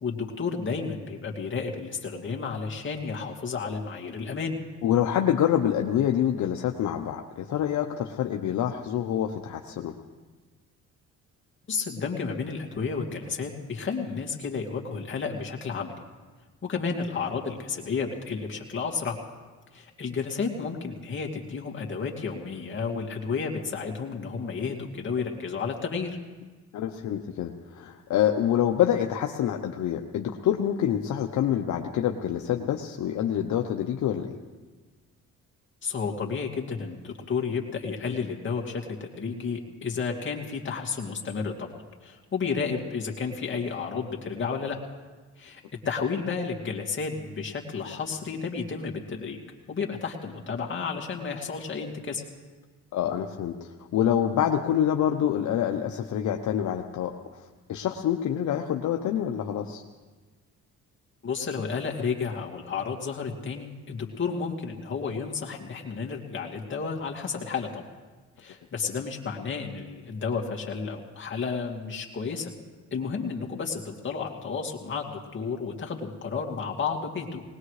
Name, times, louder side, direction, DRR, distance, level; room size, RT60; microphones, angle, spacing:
voice 1, 0.0-4.5 11.7-15.9 16.6-19.2 19.7-26.2 35.8-41.7 42.0-44.8 45.4-49.4 49.7-52.2 61.2-67.8 68.4-72.5 72.9-77.4, left 5 dB, 40° left, 0 dB, 2.4 m, -32 dB
voice 2, 4.8-9.9 26.7-34.3 52.9-59.8, left 10 dB, 70° left, 4 dB, 0.8 m, -26 dB
20.5 x 19.5 x 3.3 m, 1.3 s
cardioid pair, 90°, 30 cm